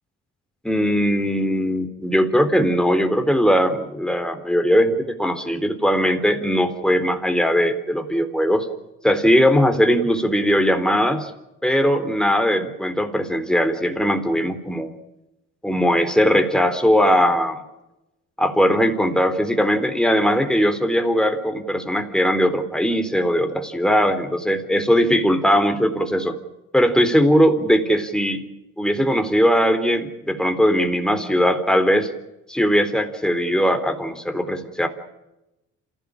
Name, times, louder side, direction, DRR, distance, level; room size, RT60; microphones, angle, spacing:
voice 1, 0.6-8.7 9.0-11.3 11.6-14.9 15.6-17.6 18.4-26.4 26.7-28.4 28.8-32.1 32.5-34.9, equal, ahead, 6 dB, 3.8 m, -19 dB
28.0 x 16.5 x 8.8 m, 0.95 s
cardioid pair, 90°, 30 cm